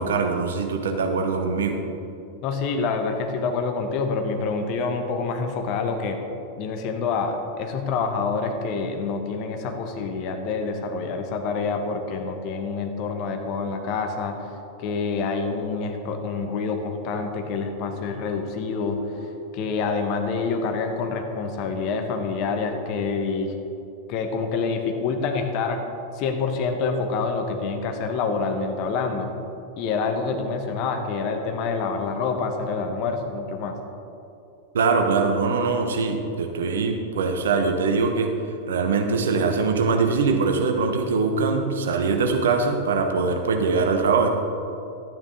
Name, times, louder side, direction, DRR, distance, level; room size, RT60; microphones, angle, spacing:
voice 1, 0.0-1.8 34.7-38.3 38.7-44.3, right 4 dB, 65° right, 4 dB, 1.1 m, -22 dB
voice 2, 2.4-6.2 6.6-23.5 24.1-25.8 26.1-29.3 29.8-33.8, left 4 dB, 40° left, 5 dB, 1.1 m, -27 dB
12.0 x 9.3 x 3.8 m, 2.7 s
figure-of-eight pair, 90°, 0 cm